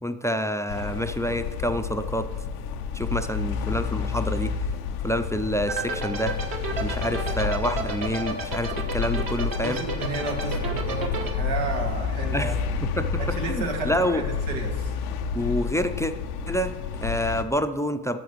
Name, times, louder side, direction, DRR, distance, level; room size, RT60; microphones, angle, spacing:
voice 1, 0.0-2.3 2.9-4.5 5.0-6.4 6.8-9.8 12.3-12.5 12.8-14.2 15.3-16.1 16.5-18.2, equal, 5° left, 9 dB, 0.5 m, -27 dB
sound 1, 0.7-17.4, left 5 dB, 90° left, 0.6 m, -30 dB
sound 2, 5.7-11.3, right 3 dB, 45° right, 1.6 m, -31 dB
voice 2, 9.6-12.5 13.2-14.9, right 3 dB, 80° right, 1 dB, 1.5 m, -32 dB
12.5 x 6.9 x 3.1 m, 1.3 s
hypercardioid pair, 40°, 46 cm